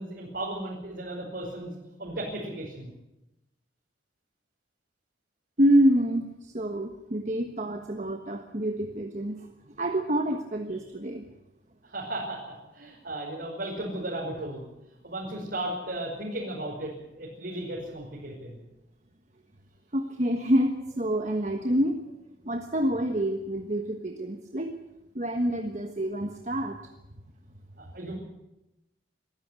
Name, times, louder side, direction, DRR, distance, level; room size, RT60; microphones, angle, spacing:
voice 1, 0.0-1.7 2.0-2.9 11.8-14.6 15.0-18.6 27.8-28.2, right 1 dB, 60° right, -5 dB, 5.5 m, -35 dB
voice 2, 5.6-11.2 19.9-22.0 22.4-24.7 25.1-26.8, equal, 40° right, 5 dB, 1.4 m, -27 dB
23.5 x 14.0 x 8.3 m, 0.92 s
head